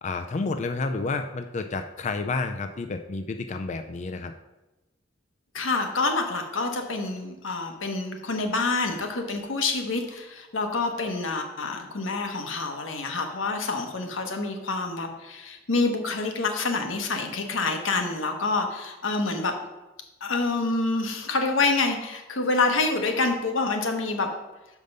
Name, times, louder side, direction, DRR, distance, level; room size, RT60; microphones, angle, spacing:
voice 1, 0.0-4.3, left 3 dB, 40° left, 7 dB, 0.4 m, -30 dB
voice 2, 5.5-19.5 20.2-24.3, left 3 dB, 90° left, 4 dB, 1.1 m, -27 dB
6.5 x 5.2 x 5.3 m, 1.0 s
head